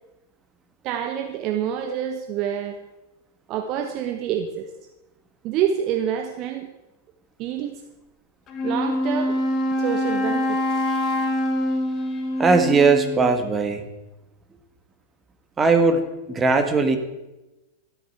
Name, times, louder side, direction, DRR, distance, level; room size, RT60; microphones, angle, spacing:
voice 1, 0.8-2.8 3.5-4.7 5.4-6.7 7.4-7.8 8.6-9.4 9.8-10.8, right 9 dB, 40° right, 6 dB, 1.2 m, -27 dB
Wind instrument woodwind instrument, 8.5-13.4, left 1 dB, 30° left, 2.3 m, -25 dB
voice 2, 12.4-13.8 15.6-16.0 16.3-17.0, right 4 dB, 20° right, 8 dB, 2.0 m, -18 dB
14.0 x 8.7 x 8.3 m, 1.0 s
figure-of-eight pair, 90°, 0 cm